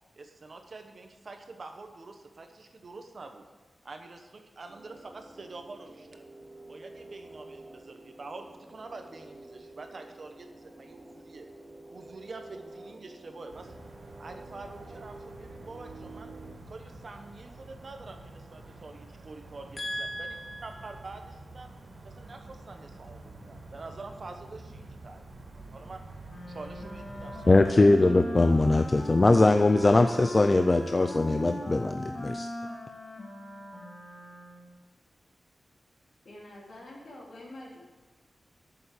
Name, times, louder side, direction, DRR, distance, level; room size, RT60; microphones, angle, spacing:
voice 1, 0.2-3.4 3.8-6.2 6.7-11.5 11.9-13.7 14.2-16.3 16.7-20.4 20.6-21.7 22.0-25.3 25.5-26.0 26.5-27.7, right 3 dB, 45° right, 5 dB, 1.0 m, -46 dB
sound 1, 4.7-16.5, right 2 dB, 30° right, 1.4 m, -49 dB
sound 2, 13.5-27.7, right 2 dB, 75° right, 2.4 m, -48 dB
voice 2, 19.8-20.6 27.5-32.5, left 2 dB, 25° left, 7 dB, 0.4 m, -22 dB
Wind instrument woodwind instrument, 26.2-34.8, left 1 dB, 40° left, 2.4 m, -40 dB
voice 3, 36.2-37.8, left 1 dB, 70° left, -4 dB, 3.2 m, -46 dB
8.5 x 7.0 x 8.4 m, 1.3 s
wide cardioid pair, 165°, 0 cm